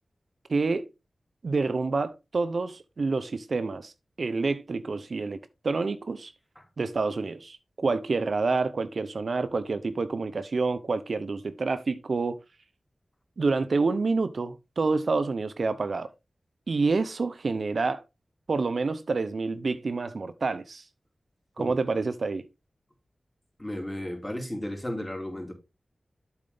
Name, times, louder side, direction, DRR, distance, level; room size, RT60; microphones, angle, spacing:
voice 1, 0.5-0.9 1.4-3.9 4.2-5.4 5.6-6.3 6.8-12.4 13.4-16.1 16.7-18.0 18.5-20.8 21.6-22.5, right 3 dB, 70° right, 0.7 m, -28 dB
voice 2, 23.6-25.5, left 1 dB, 15° left, 3.8 m, -34 dB
8.0 x 7.3 x 3.5 m
cardioid pair, 45°, 0 cm